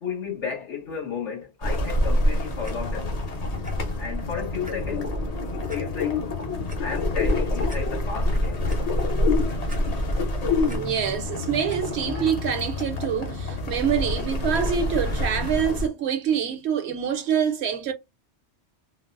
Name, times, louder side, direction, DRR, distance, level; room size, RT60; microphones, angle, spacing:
voice 1, 0.0-3.1 4.0-5.1 5.5-6.3 6.8-8.6 9.8-9.9, left 6 dB, 80° left, 1.8 m, -33 dB
sound 1, 1.6-15.9, left 2 dB, 40° left, 0.7 m, -26 dB
Clock, 2.6-2.7 3.6-3.7 4.2-4.3 4.6-4.7 5.7-5.8 6.4-6.8 7.3-7.4 7.7-7.8 8.3-8.8 9.7-10.2 10.5-10.8 11.7-11.8 12.5-12.6, right 1 dB, 10° right, 0.5 m, -45 dB
voice 2, 10.6-17.9, right 8 dB, 70° right, 0.9 m, -26 dB
3.9 x 2.1 x 2.4 m
omnidirectional pair, 1.2 m